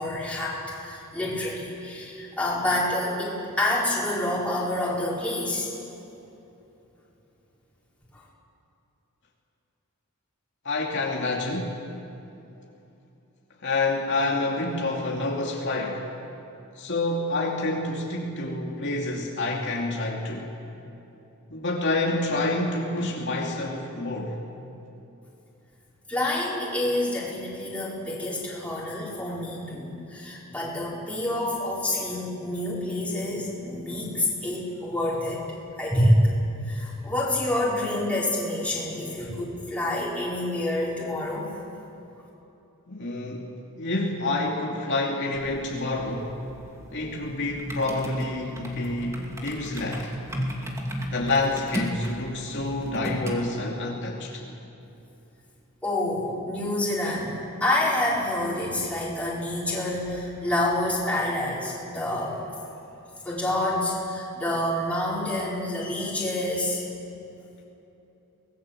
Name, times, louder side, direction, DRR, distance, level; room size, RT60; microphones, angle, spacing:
voice 1, 0.0-5.7 8.1-8.2 26.1-35.5 35.8-36.2 36.6-41.5 55.8-62.5 63.2-66.8, left 1 dB, 5° left, -6 dB, 5.0 m, -27 dB
voice 2, 10.6-11.7 13.6-16.0 16.8-20.5 21.5-24.4 42.9-46.4 46.9-50.1 51.1-54.4, left 2 dB, 55° left, -2 dB, 2.6 m, -28 dB
sound 1, 45.3-53.4, equal, 15° right, 2.6 m, -35 dB
24.5 x 20.0 x 7.6 m, 2.9 s
head